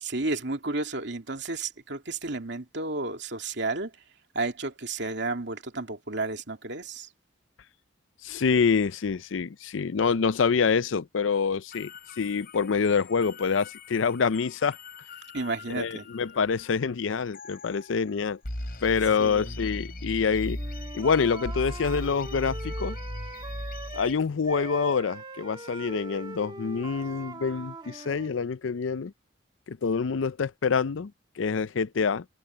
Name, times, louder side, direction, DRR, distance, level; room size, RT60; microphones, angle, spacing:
voice 1, 0.0-3.9 4.3-7.1 15.3-16.1 19.2-19.5, right 3 dB, 65° right, 2.8 m, -32 dB
voice 2, 8.2-11.9 12.2-14.8 15.7-18.4 18.8-20.6 20.9-23.0 23.9-29.1 29.7-31.1 31.4-32.2, left 5 dB, 85° left, 0.5 m, -26 dB
sound 1, 11.7-16.6 17.3-18.1 18.4-24.1, left 1 dB, 50° left, 5.1 m, -38 dB
Wind instrument woodwind instrument, 20.5-24.2 24.4-28.3, right 2 dB, 25° right, 1.5 m, -42 dB
head